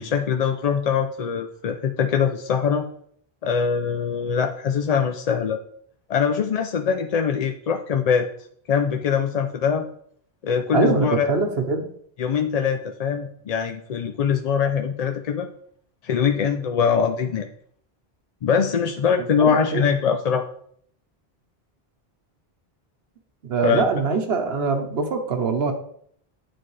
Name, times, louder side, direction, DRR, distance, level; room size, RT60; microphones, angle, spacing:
voice 1, 0.0-2.9 3.4-5.6 6.1-8.3 8.7-9.9 10.4-11.3 12.2-15.5 16.0-17.5 18.4-20.4 23.6-23.8, left 7 dB, 55° left, 5 dB, 0.4 m, -22 dB
voice 2, 10.7-11.9 19.2-19.9 23.4-25.7, right 4 dB, 80° right, 5 dB, 1.2 m, -23 dB
9.5 x 4.1 x 3.2 m, 0.63 s
omnidirectional pair, 1.0 m